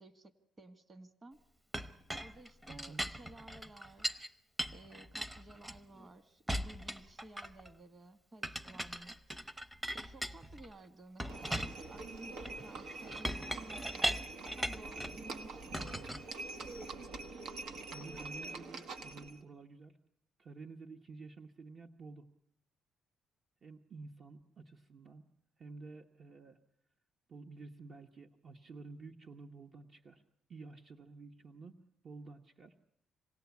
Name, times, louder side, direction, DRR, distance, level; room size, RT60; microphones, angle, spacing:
voice 1, 0.0-1.4 2.1-4.2 4.7-9.2 9.9-14.1 14.4-16.0, right 2 dB, 30° right, 10 dB, 1.6 m, -55 dB
Chink clink, 1.7-4.3 4.6-6.1 6.5-7.7 8.4-10.7 11.2-15.2 15.7-16.9, equal, 10° right, 0.8 m, -39 dB
voice 2, 2.7-3.1 15.8-16.5 17.9-20.0 20.4-22.3 23.6-25.2 25.6-26.6 27.3-30.2 30.5-31.7 32.0-32.7, right 3 dB, 55° right, 3 dB, 1.1 m, -51 dB
Livestock farm animals working animals, 11.3-19.4, right 3 dB, 80° right, 1.1 m, -45 dB
26.5 x 18.0 x 8.4 m, 0.80 s
cardioid pair, 90°, 0 cm